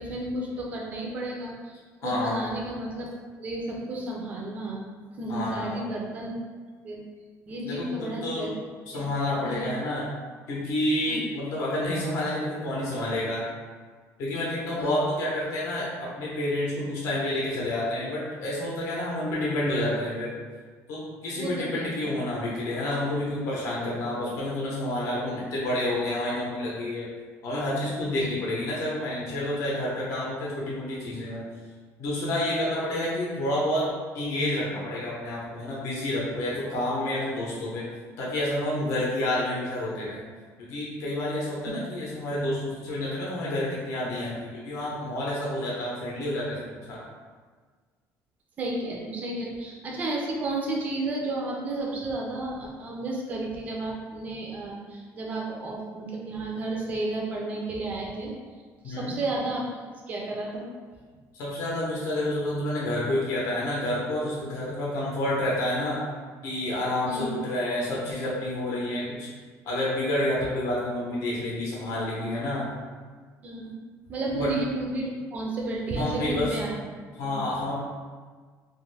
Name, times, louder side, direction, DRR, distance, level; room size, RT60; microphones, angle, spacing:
voice 1, 0.0-1.7 2.0-3.1 3.4-4.9 5.2-6.3 6.8-7.0 7.5-8.5 8.9-9.0 9.4-9.7 11.1-11.2 14.8-14.9 21.4-22.0 28.2-28.3 48.6-58.3 58.8-59.6 60.1-60.7 67.1-67.4 73.4-73.8 74.1-77.4, right 2 dB, 25° right, -2 dB, 0.4 m, -32 dB
voice 2, 2.0-2.4 5.3-5.8 7.6-8.5 8.9-10.1 10.5-13.4 14.2-20.3 20.9-27.1 27.4-31.4 32.0-33.9 34.1-37.8 38.2-40.2 40.6-47.0 58.8-59.1 61.3-66.0 66.4-69.3 69.6-72.7 74.3-74.5 75.9-76.6 77.2-77.7, left 1 dB, 55° left, -5 dB, 0.7 m, -29 dB
2.5 x 2.4 x 3.2 m, 1.5 s
cardioid pair, 175°, 6 cm